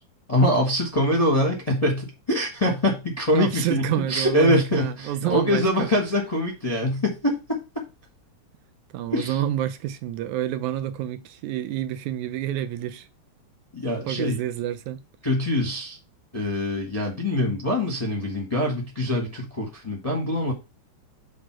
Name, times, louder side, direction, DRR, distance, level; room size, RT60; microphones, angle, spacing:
voice 1, 0.3-7.8 9.1-9.4 13.7-14.4 15.2-16.0 16.3-20.5, left 1 dB, 25° left, 0.7 m, -24 dB
voice 2, 3.3-5.9 8.9-13.1 14.0-15.0, right 12 dB, 85° right, 2.2 m, -28 dB
6.5 x 3.4 x 6.0 m
omnidirectional pair, 3.3 m